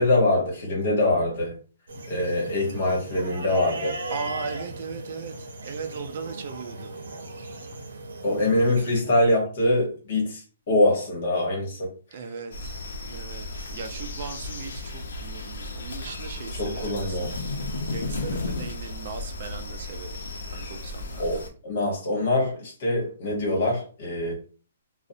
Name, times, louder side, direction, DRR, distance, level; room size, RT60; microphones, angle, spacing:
voice 1, 0.0-1.6 2.1-4.0 8.2-10.4 10.7-11.9 16.6-17.3 21.2-24.4, left 1 dB, 45° left, 1.0 m, -24 dB
sound 1, 1.9-9.0, right 1 dB, 85° right, 0.6 m, -37 dB
voice 2, 4.1-7.0 12.1-12.8 13.1-17.4 17.9-20.1 20.5-21.4, right 5 dB, 45° right, 0.4 m, -38 dB
sound 2, 12.5-21.5, left 2 dB, 80° left, 0.6 m, -34 dB
2.5 x 2.0 x 2.6 m
hypercardioid pair, 165°, 0 cm